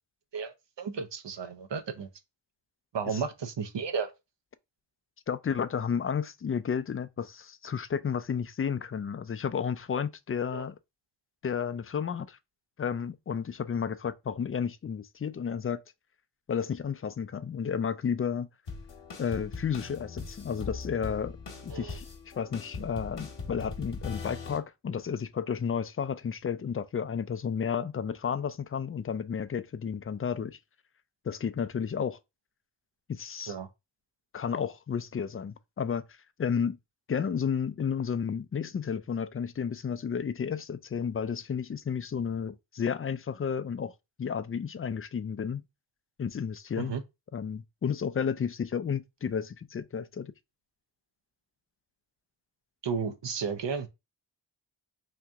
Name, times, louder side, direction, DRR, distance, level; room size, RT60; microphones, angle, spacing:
voice 1, 0.3-2.1 2.9-4.1 10.5-10.7 21.7-22.0 33.5-33.7 46.8-47.0 52.8-53.9, right 6 dB, 65° right, 0.7 m, -33 dB
voice 2, 5.3-10.8 11.4-12.4 12.8-15.8 16.5-18.5 19.2-21.4 21.6-22.1 22.4-30.6 31.2-32.2 33.1-33.5 34.3-36.0 36.4-36.8 37.1-43.9 44.2-45.6 46.2-47.0 47.3-50.3, left 7 dB, 30° left, 0.4 m, -32 dB
sound 1, 18.7-24.6, left 4 dB, 65° left, 1.0 m, -40 dB
3.0 x 2.6 x 3.4 m
cardioid pair, 40°, 46 cm